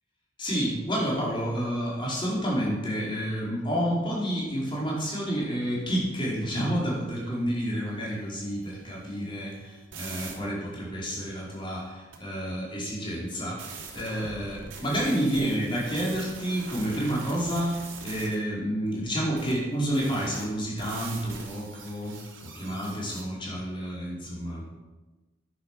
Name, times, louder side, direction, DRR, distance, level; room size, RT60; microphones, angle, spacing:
voice 1, 0.4-24.7, equal, 25° left, -5 dB, 4.6 m, -30 dB
sound 1, 8.7-10.3 12.1-12.2 13.6-18.4 19.4-19.6 19.9-23.2, right 4 dB, 80° right, 3.2 m, -43 dB
11.0 x 9.8 x 6.6 m, 1.2 s
head